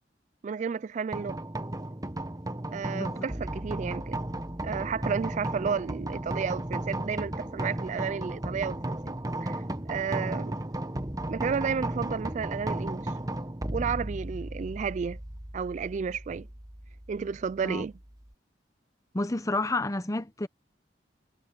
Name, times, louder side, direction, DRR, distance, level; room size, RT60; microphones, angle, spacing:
voice 1, 0.4-1.4 2.7-4.2 4.6-9.1 9.4-9.6 9.9-10.5 11.3-13.1 13.7-15.2 15.5-16.5 17.1-17.9, right 6 dB, 40° right, 0.3 m, -32 dB
sound 1, 1.1-18.3, right 1 dB, 20° right, 1.3 m, -35 dB
voice 2, 19.1-20.5, left 2 dB, 20° left, 0.9 m, -30 dB
head